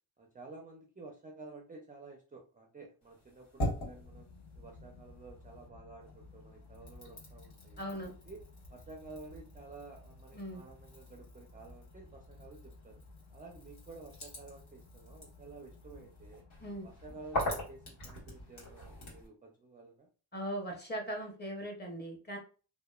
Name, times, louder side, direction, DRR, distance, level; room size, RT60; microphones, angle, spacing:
voice 1, 0.2-4.3 4.5-8.4 8.7-13.0 13.3-16.5 16.8-20.1, right 3 dB, 20° right, 1 dB, 0.3 m, -52 dB
sound 1, 3.0-5.7 6.0-19.3, equal, 80° left, 1.4 m, -43 dB
sound 2, 3.6-19.2, left 3 dB, 60° left, 0.6 m, -56 dB
voice 2, 7.8-8.1 10.3-10.6 16.6-16.9 20.3-22.4, equal, 20° left, 1 dB, 0.8 m, -39 dB
2.8 x 2.2 x 2.2 m, 0.37 s
cardioid pair, 95°, 48 cm